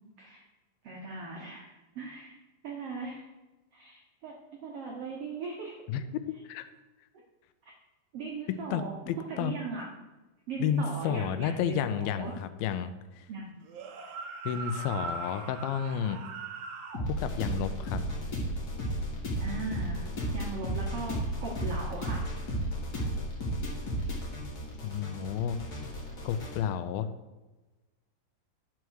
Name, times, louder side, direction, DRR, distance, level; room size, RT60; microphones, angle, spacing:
voice 1, 0.8-2.3 2.6-3.3 3.7-4.3 4.6-5.8 7.6-7.7 8.1-9.0 9.3-10.0 10.5-12.4 13.3-13.6 19.4-20.1 20.3-22.3, right 3 dB, 85° right, -1 dB, 1.3 m, -39 dB
voice 2, 5.9-6.7 8.5-9.5 10.6-13.3 14.5-16.2 17.1-18.0 24.8-25.6 26.2-27.1, left 8 dB, 85° left, 11 dB, 2.4 m, -31 dB
sound 1, 13.6-17.1, right 4 dB, 70° right, 2.1 m, -40 dB
sound 2, 16.9-26.6, equal, 40° left, 1.4 m, -34 dB
11.0 x 4.6 x 6.3 m, 1.1 s
omnidirectional pair, 4.2 m